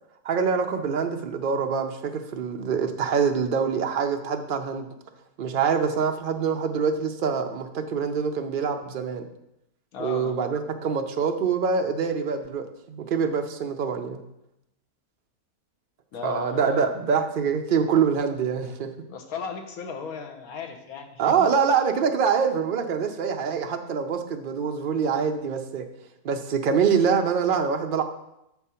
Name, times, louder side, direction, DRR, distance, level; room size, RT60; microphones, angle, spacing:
voice 1, 0.2-4.9 5.4-9.3 10.0-14.2 16.2-18.9 21.2-25.8 26.2-28.0, right 6 dB, 55° right, 5 dB, 0.6 m, -25 dB
voice 2, 9.9-10.4 16.1-16.9 19.1-21.5, left 6 dB, 75° left, 5 dB, 1.3 m, -36 dB
6.6 x 4.6 x 5.6 m, 0.85 s
omnidirectional pair, 1.6 m